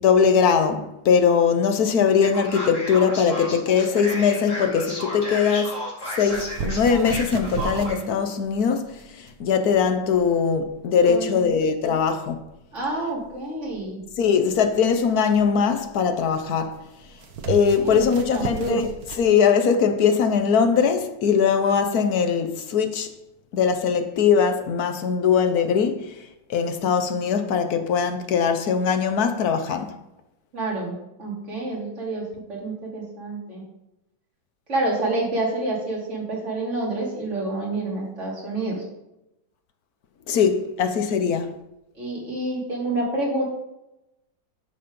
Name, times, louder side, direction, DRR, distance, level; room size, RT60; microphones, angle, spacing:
voice 1, 0.0-5.8 6.2-12.4 14.2-16.8 17.5-18.9 19.2-23.1 23.5-26.2 26.5-29.9 40.3-41.5, left 6 dB, 60° left, 1.2 m, -21 dB
Male speech man speaking, 2.2-8.0, equal, 40° left, 2.7 m, -33 dB
sound 1, 6.2-19.3, right 6 dB, 55° right, 1.3 m, -36 dB
voice 2, 11.0-11.6 12.7-14.0 17.8-18.8 30.5-33.6 34.7-38.8 41.9-43.4, right 2 dB, 40° right, 3.0 m, -28 dB
12.5 x 4.2 x 5.1 m
omnidirectional pair, 2.1 m